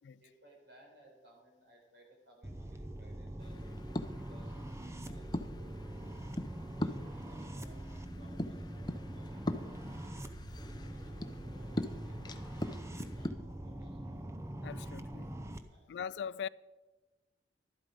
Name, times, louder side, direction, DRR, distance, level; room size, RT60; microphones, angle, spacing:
voice 1, 0.2-6.3 6.8-7.9 8.2-14.2 15.7-16.1, equal, 65° right, 4.5 m, -62 dB
Alien Generator Loop, 2.4-15.6, right 1 dB, 15° right, 0.7 m, -43 dB
sound 1, 3.4-13.3, left 1 dB, 25° left, 0.6 m, -42 dB
sound 2, 7.1-9.1 9.4-12.8, equal, 85° right, 1.8 m, -64 dB
voice 2, 14.6-15.3 15.9-16.5, left 7 dB, 70° left, 0.3 m, -40 dB
12.0 x 11.5 x 5.2 m
head